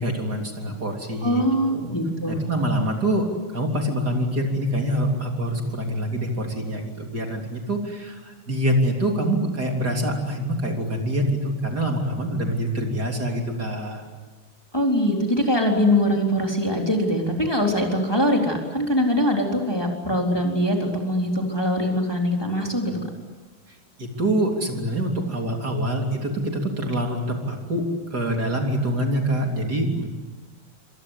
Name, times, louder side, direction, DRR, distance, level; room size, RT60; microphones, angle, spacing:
voice 1, 0.0-1.4 1.7-2.0 2.3-3.3 3.5-14.0 22.9-23.0 23.7-30.1, right 1 dB, 45° right, 1 dB, 4.0 m, -25 dB
voice 2, 1.2-2.4 14.7-22.9, equal, 10° left, 1 dB, 3.8 m, -22 dB
28.0 x 26.0 x 8.3 m, 1.2 s
omnidirectional pair, 2.4 m